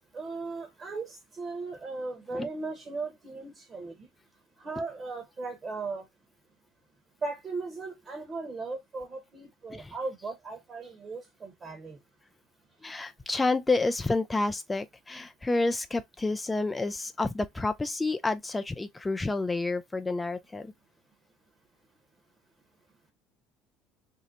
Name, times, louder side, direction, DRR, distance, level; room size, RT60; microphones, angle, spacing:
voice 1, 0.1-4.1 4.6-6.1 7.2-12.0, right 3 dB, 35° right, 1.1 m, -37 dB
voice 2, 12.8-20.7, left 3 dB, 15° left, 0.3 m, -29 dB
2.7 x 2.0 x 3.8 m
hypercardioid pair, 75°, 0 cm